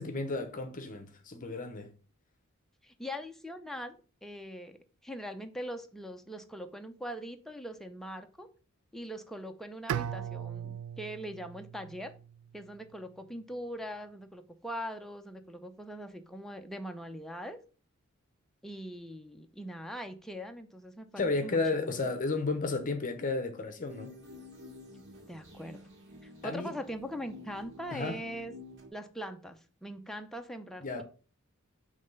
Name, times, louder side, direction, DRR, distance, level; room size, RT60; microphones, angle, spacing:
voice 1, 0.0-1.9 21.2-24.1 26.4-26.7 27.9-28.2 30.8-31.0, left 3 dB, 40° left, 0.7 m, -32 dB
voice 2, 2.8-4.8 5.0-8.5 8.9-12.1 12.5-17.6 18.6-22.2 25.3-25.8 26.2-28.5 28.9-31.0, equal, ahead, 0.5 m, -41 dB
Bowed string instrument, 9.9-12.9, right 10 dB, 90° right, 0.3 m, -39 dB
sound 1, 23.8-28.9, left 2 dB, 60° right, 2.0 m, -50 dB
5.7 x 3.2 x 5.3 m
head